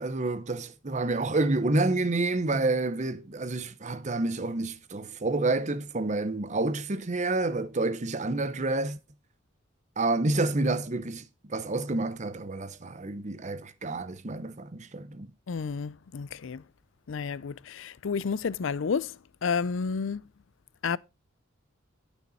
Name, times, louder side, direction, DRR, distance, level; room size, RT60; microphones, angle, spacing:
voice 1, 0.0-9.0 10.0-15.3, right 2 dB, 35° right, 0.8 m, -29 dB
voice 2, 15.5-16.6 17.1-19.2 19.4-20.2 20.8-21.0, left 5 dB, 60° left, 0.4 m, -30 dB
12.5 x 6.5 x 4.1 m
head